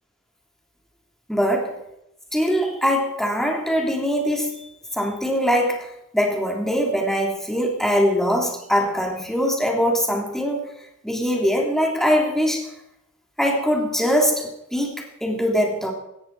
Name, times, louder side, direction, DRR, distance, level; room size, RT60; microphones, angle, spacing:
voice 1, 1.3-1.7 2.3-5.9 6.1-10.6 11.0-12.7 13.4-15.9, equal, ahead, 1 dB, 3.2 m, -22 dB
17.0 x 14.0 x 4.8 m, 0.84 s
head